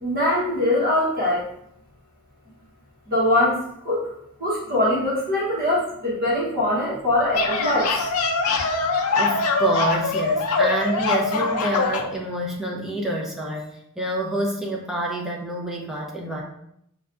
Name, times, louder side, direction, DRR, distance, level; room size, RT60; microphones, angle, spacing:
voice 1, 0.0-1.4 3.1-4.1 4.4-8.0, left 1 dB, 40° right, -5 dB, 1.1 m, -22 dB
sound 1, 7.1-12.1, left 4 dB, 80° left, 0.5 m, -23 dB
voice 2, 9.2-16.4, right 1 dB, ahead, -3 dB, 0.6 m, -27 dB
5.2 x 2.3 x 2.5 m, 0.74 s
head